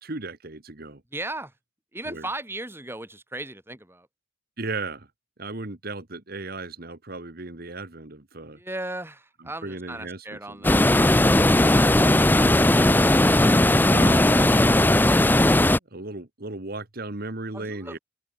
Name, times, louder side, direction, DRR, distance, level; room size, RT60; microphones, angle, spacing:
voice 1, 0.0-1.0 2.0-2.3 4.6-5.1 5.4-8.6 9.4-10.9 13.9-14.3 15.9-18.0, right 2 dB, 50° right, 1.7 m, -36 dB
voice 2, 1.1-1.5 1.9-4.1 8.5-11.1 17.5-18.0, right 2 dB, 10° right, 5.4 m, -36 dB
sound 1, 10.6-15.8, left 1 dB, 10° left, 0.6 m, -18 dB
open air
head